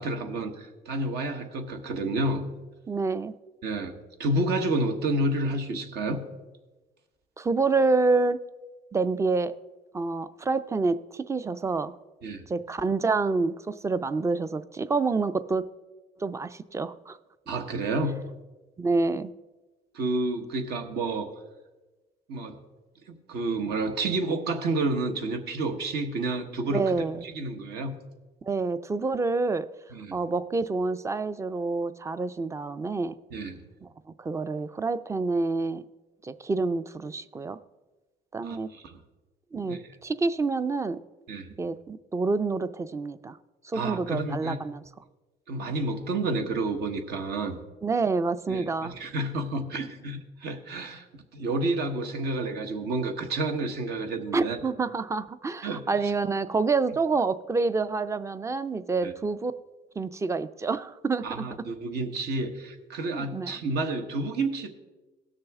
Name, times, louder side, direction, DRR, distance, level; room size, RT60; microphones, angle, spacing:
voice 1, 0.0-2.5 3.6-6.2 12.2-12.4 17.5-18.2 19.9-21.3 22.3-22.6 23.3-26.8 27.2-27.9 29.9-30.2 33.3-33.6 38.4-39.0 39.7-39.8 41.3-41.5 43.7-44.6 45.5-47.6 48.5-54.6 55.6-55.8 59.0-59.1 61.2-64.7, right 2 dB, 75° right, 5 dB, 1.3 m, -30 dB
voice 2, 2.9-3.4 7.4-8.4 8.9-9.5 9.9-11.9 12.5-15.7 16.2-17.2 18.8-19.3 26.7-27.3 28.4-29.7 30.1-33.2 33.8-33.9 34.2-35.9 36.2-37.6 38.3-38.7 39.5-41.0 41.6-43.4 43.6-44.8 47.8-48.9 54.3-59.5 60.0-61.7 63.1-63.5, right 3 dB, 15° right, 13 dB, 0.4 m, -27 dB
17.5 x 6.6 x 3.6 m, 1.2 s
cardioid pair, 110°, 17 cm